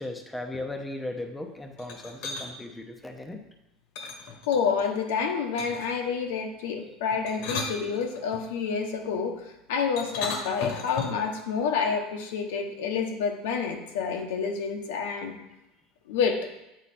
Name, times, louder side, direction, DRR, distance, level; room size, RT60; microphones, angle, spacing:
voice 1, 0.0-3.4, left 2 dB, 5° left, 3 dB, 0.8 m, -37 dB
sound 1, 1.8-2.5 3.9-4.9 5.6-6.0 7.1-8.4 10.0-11.3, left 4 dB, 70° left, 1.2 m, -35 dB
voice 2, 4.5-9.4 9.7-15.3 16.1-16.5, left 6 dB, 90° left, 3 dB, 1.1 m, -28 dB
8.8 x 4.1 x 4.3 m, 0.92 s
supercardioid pair, 135°, 0 cm